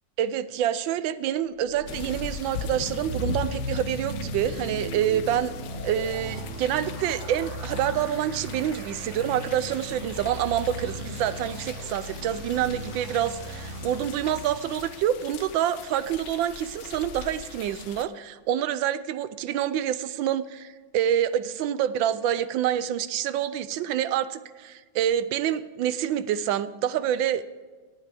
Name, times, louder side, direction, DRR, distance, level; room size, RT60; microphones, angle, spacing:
voice 1, 0.2-5.6 5.8-27.4, right 10 dB, 80° right, 14 dB, 1.3 m, -27 dB
sound 1, 1.5-14.8, right 1 dB, 45° right, 1.0 m, -37 dB
sound 2, 1.9-18.1, left 8 dB, 70° left, 1.3 m, -41 dB
17.5 x 9.7 x 3.4 m, 1.4 s
omnidirectional pair, 2.1 m